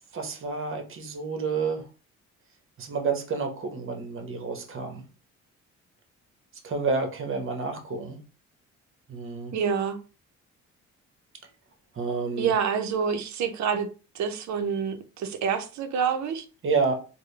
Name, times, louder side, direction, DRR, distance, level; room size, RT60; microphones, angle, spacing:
voice 1, 0.1-1.8 2.8-5.0 6.6-8.2 9.1-9.5 12.0-12.5 16.6-16.9, right 4 dB, 45° right, 1.0 m, -29 dB
voice 2, 9.5-10.0 12.4-13.9 14.1-16.4, right 7 dB, 65° right, 0.7 m, -27 dB
3.7 x 2.2 x 3.2 m
cardioid pair, 90°, 30 cm